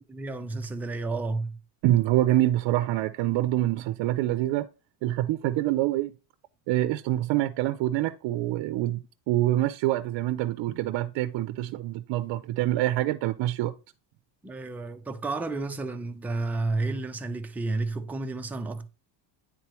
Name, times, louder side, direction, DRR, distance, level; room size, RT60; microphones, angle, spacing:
voice 1, 0.1-1.6 14.4-18.9, right 3 dB, 5° right, 0.3 m, -31 dB
voice 2, 1.8-4.7 5.0-6.1 6.7-13.7, right 14 dB, 65° right, 0.6 m, -26 dB
9.6 x 3.8 x 3.0 m
cardioid pair, 130°, 49 cm